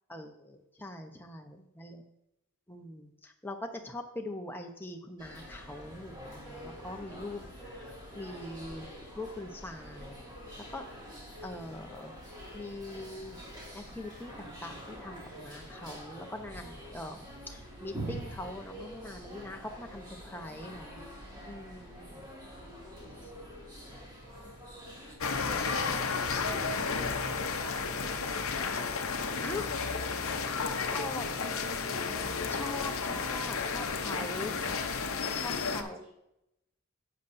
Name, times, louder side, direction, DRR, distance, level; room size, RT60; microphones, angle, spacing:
voice 1, 0.1-2.0 2.7-8.9 9.2-10.2 10.7-10.8 11.4-12.2 12.5-13.4 13.7-21.0 21.5-22.2 23.1-23.3 29.4-29.8 30.9-31.3 32.5-34.6 35.3-36.0, left 1 dB, 10° left, 3 dB, 0.8 m, -42 dB
sound 1, 5.2-25.2, equal, 20° right, 2.3 m, -46 dB
sound 2, 25.2-35.8, left 5 dB, 65° left, 0.7 m, -32 dB
voice 2, 25.4-26.2 26.5-28.6 30.3-31.6 34.9-36.1, right 1 dB, 40° right, -3 dB, 2.8 m, -48 dB
11.0 x 8.1 x 2.7 m, 0.85 s
head